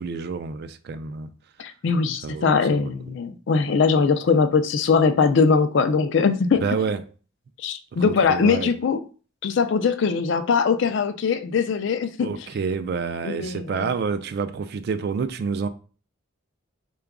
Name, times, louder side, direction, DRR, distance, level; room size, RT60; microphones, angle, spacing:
voice 1, 0.0-1.3 2.2-2.9 6.6-7.0 7.9-8.7 12.2-15.7, right 5 dB, 50° right, 0.3 m, -28 dB
voice 2, 1.6-6.6 7.6-9.0 9.4-12.3 13.2-13.9, left 5 dB, 55° left, 0.3 m, -21 dB
3.8 x 2.3 x 3.5 m
head